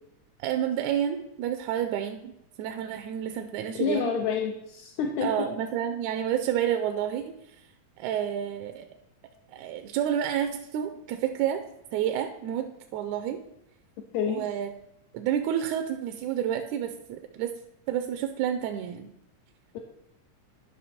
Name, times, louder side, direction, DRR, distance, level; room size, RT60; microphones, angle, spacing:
voice 1, 0.4-2.3 2.6-4.1 5.2-7.3 8.0-8.9 9.5-11.6 11.9-12.7 12.9-13.4 14.3-14.7 15.1-17.5 17.9-19.1, right 10 dB, 80° right, 7 dB, 1.9 m, -29 dB
voice 2, 3.8-5.4 14.1-14.5 19.7-19.8, left 7 dB, 75° left, 2 dB, 2.0 m, -28 dB
11.0 x 5.7 x 4.3 m, 0.80 s
omnidirectional pair, 3.5 m